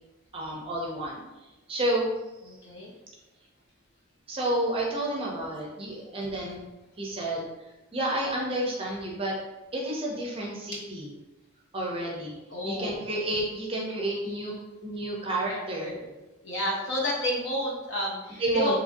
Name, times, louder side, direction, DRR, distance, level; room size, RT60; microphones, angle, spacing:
voice 1, 0.3-1.2 1.7-2.1 4.3-6.7 7.0-7.5 7.9-9.3 9.7-11.1 11.7-12.3 12.6-14.5 14.8-15.9 18.4-18.8, right 1 dB, 25° right, -2 dB, 0.5 m, -30 dB
voice 2, 2.4-2.9 5.9-6.0 10.7-10.8 12.5-13.0 14.3-14.4 15.5-16.1 16.4-18.8, left 1 dB, 60° left, -2 dB, 0.7 m, -31 dB
2.9 x 2.5 x 2.5 m, 1.1 s
head